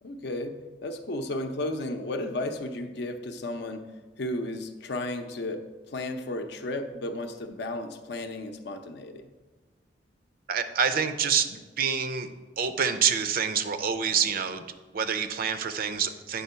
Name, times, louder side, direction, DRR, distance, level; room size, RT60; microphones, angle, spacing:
voice 1, 0.0-9.3, left 1 dB, 65° left, 6 dB, 0.6 m, -34 dB
voice 2, 10.5-12.3 12.6-14.6 14.9-16.4, right 6 dB, 55° right, 9 dB, 0.5 m, -27 dB
8.4 x 3.8 x 5.5 m, 1.3 s
head